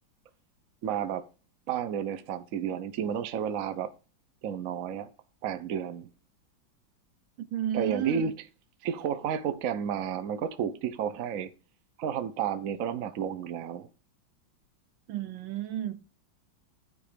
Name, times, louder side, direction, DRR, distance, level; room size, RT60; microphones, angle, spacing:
voice 1, 0.8-1.2 1.7-3.9 4.4-5.1 5.4-6.1 7.7-8.3 8.8-11.5 12.0-13.9, right 8 dB, 55° right, 1.0 m, -31 dB
voice 2, 7.4-8.3 15.1-16.0, right 10 dB, 80° right, 1.6 m, -32 dB
12.0 x 4.9 x 5.0 m
omnidirectional pair, 2.1 m